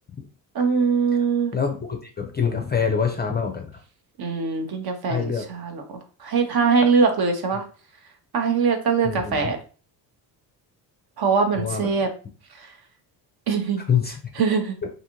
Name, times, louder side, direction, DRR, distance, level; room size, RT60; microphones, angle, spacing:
voice 1, 0.5-1.5 4.2-5.8 6.2-7.6 8.3-9.6 11.2-12.1 12.6-12.7 13.5-13.8 14.4-14.8, right 5 dB, 50° right, 5 dB, 0.8 m, -22 dB
voice 2, 1.5-3.8 5.1-5.5 9.0-9.5 11.5-11.9 13.9-14.3, left 6 dB, 20° left, 4 dB, 0.4 m, -25 dB
2.6 x 2.5 x 2.9 m, 0.38 s
supercardioid pair, 60°, 50 cm